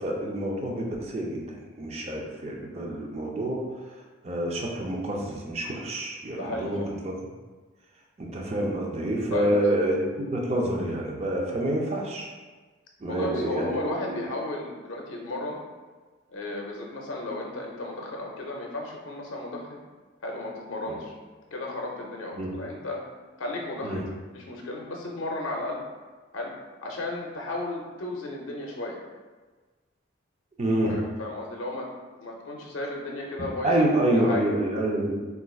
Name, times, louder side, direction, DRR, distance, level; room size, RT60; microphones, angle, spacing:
voice 1, 0.0-3.6 3.9-7.1 8.2-12.3 13.0-13.8 14.1-14.2 20.9-21.0 22.3-22.5 23.8-24.0 30.6-31.0 33.6-35.2, right 1 dB, 30° right, -1 dB, 0.4 m, -27 dB
voice 2, 6.4-6.9 9.3-9.6 13.1-15.6 16.3-19.8 20.2-21.1 21.5-23.0 23.4-24.1 24.3-25.8 26.3-26.5 26.8-29.0 30.8-31.9 32.2-34.4, left 2 dB, 75° left, 0 dB, 0.5 m, -34 dB
4.1 x 2.4 x 2.3 m, 1.3 s
head